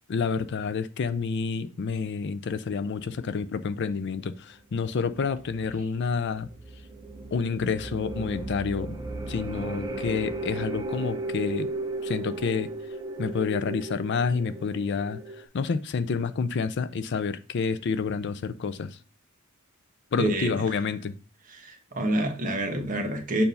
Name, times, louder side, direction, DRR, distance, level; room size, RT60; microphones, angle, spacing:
voice 1, 0.1-6.5 7.3-8.9 9.3-11.7 12.0-12.7 13.2-15.2 15.5-19.0 20.1-21.1, left 5 dB, 55° left, 0.4 m, -29 dB
sound 1, 5.4-15.5, right 2 dB, 20° right, 0.7 m, -35 dB
voice 2, 20.2-20.5 21.5-23.4, right 1 dB, 40° right, 1.2 m, -27 dB
6.8 x 2.6 x 5.4 m
head